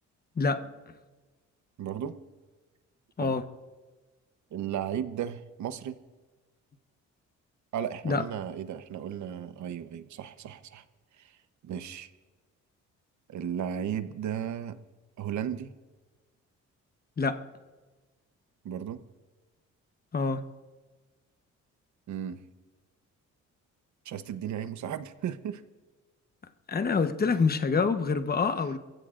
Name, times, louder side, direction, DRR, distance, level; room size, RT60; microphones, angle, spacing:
voice 1, 0.4-0.7 3.2-3.4 8.0-8.2 17.2-17.4 20.1-20.4 26.7-28.8, left 4 dB, 30° left, 9 dB, 1.1 m, -26 dB
voice 2, 1.8-2.1 3.2-3.4 4.5-6.0 7.7-10.8 11.2-11.3 11.6-12.1 13.3-14.8 15.2-15.7 18.6-19.0 22.1-22.4 24.0-25.6 27.2-27.3 28.5-28.6, right 9 dB, 70° right, 11 dB, 1.0 m, -35 dB
27.5 x 15.5 x 2.5 m, 1.3 s
cardioid pair, 90°, 30 cm